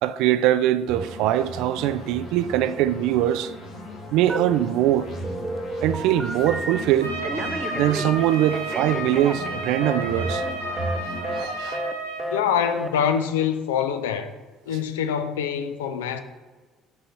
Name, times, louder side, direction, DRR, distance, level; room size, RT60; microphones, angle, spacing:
voice 1, 0.0-3.5 4.1-5.1 5.8-7.1 7.7-10.4 11.4-11.8, right 12 dB, 65° right, 0.3 m, -22 dB
sound 1, 0.9-11.4, equal, 60° left, 2.2 m, -36 dB
Telephone, 4.3-4.9 5.2-6.8 7.2-10.0 10.3-10.5 10.8-11.0 11.2-11.5 11.7-11.9 12.2-12.4 12.7-12.9, right 1 dB, 15° right, 0.7 m, -32 dB
Trumpet, 7.0-12.3, right 2 dB, 90° right, 1.0 m, -32 dB
voice 2, 12.3-14.3 14.7-16.2, left 8 dB, 75° left, 0.5 m, -25 dB
6.8 x 4.0 x 5.4 m
figure-of-eight pair, 55°, 0 cm